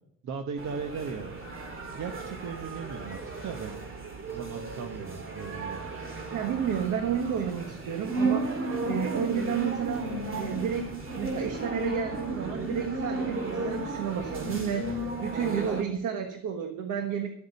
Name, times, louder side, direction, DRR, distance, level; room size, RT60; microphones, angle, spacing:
voice 1, 0.2-1.4 1.9-3.8 4.3-5.9, right 6 dB, 65° right, 5 dB, 1.2 m, -37 dB
sound 1, 0.6-15.8, right 2 dB, 45° right, 2.4 m, -34 dB
voice 2, 6.3-17.3, right 8 dB, 80° right, 6 dB, 1.4 m, -31 dB
13.0 x 8.2 x 5.3 m, 0.77 s
cardioid pair, 90°, 30 cm